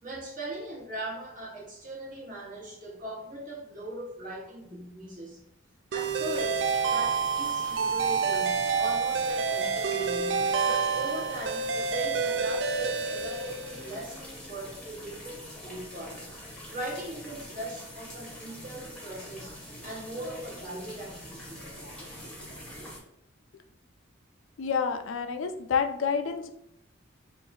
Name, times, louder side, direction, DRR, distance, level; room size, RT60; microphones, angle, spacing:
voice 1, 0.0-5.4 5.9-16.3 16.7-21.7, right 1 dB, 40° right, -4 dB, 1.1 m, -39 dB
sound 1, 5.9-23.0, equal, 5° left, 0.8 m, -44 dB
sound 2, 5.9-14.0, right 5 dB, 60° right, 0.3 m, -28 dB
voice 2, 24.6-26.5, left 6 dB, 75° left, 7 dB, 0.4 m, -28 dB
2.8 x 2.5 x 4.0 m, 0.77 s
head